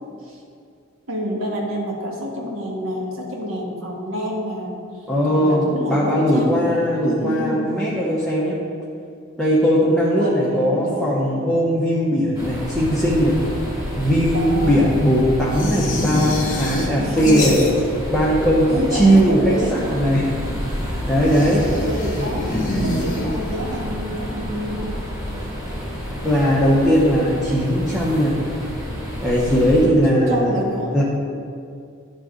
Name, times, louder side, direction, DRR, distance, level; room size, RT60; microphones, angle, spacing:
voice 1, 1.1-6.7 7.2-7.7 10.2-11.3 14.3-14.9 17.0-18.0 18.7-19.8 21.3-25.0 30.0-31.0, equal, 80° right, -2 dB, 1.4 m, -28 dB
voice 2, 5.1-8.6 9.4-13.4 14.0-17.6 18.1-20.3 21.1-21.6 26.2-28.4 29.2-30.5 30.9-31.0, equal, ahead, -8 dB, 0.8 m, -18 dB
sound 1, 12.3-29.9, equal, 20° right, 1.8 m, -30 dB
sound 2, 15.5-18.1 18.3-19.2 21.2-23.7, left 1 dB, 40° left, 1.0 m, -25 dB
11.5 x 3.9 x 3.7 m, 2.4 s
head